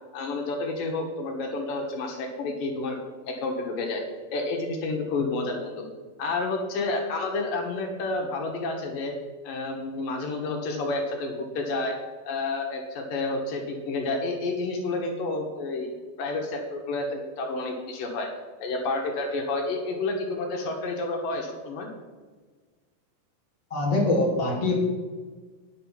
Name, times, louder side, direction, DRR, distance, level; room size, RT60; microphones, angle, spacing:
voice 1, 0.1-3.0 3.3-4.0 4.3-5.9 6.2-9.1 9.4-12.0 12.2-15.9 16.2-18.3 18.6-21.9, left 3 dB, 75° left, 2 dB, 3.1 m, -30 dB
voice 2, 23.7-24.7, left 2 dB, 10° left, -4 dB, 2.2 m, -23 dB
9.9 x 7.9 x 5.9 m, 1.4 s
omnidirectional pair, 3.9 m